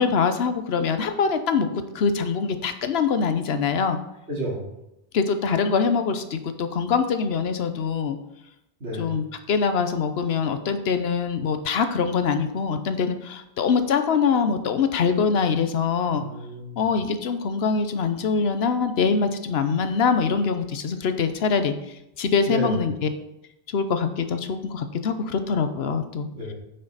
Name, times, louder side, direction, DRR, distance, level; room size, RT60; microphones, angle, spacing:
voice 1, 0.0-1.7 1.9-4.0 5.1-8.2 9.0-16.2 16.8-21.7 22.2-23.1 23.7-26.3, left 5 dB, 80° left, 9 dB, 1.0 m, -23 dB
voice 2, 4.3-4.7 8.8-9.1 16.1-16.8 22.4-22.8 26.3-26.5, equal, 85° right, -4 dB, 2.6 m, -31 dB
9.1 x 5.6 x 4.0 m, 0.86 s
omnidirectional pair, 1.0 m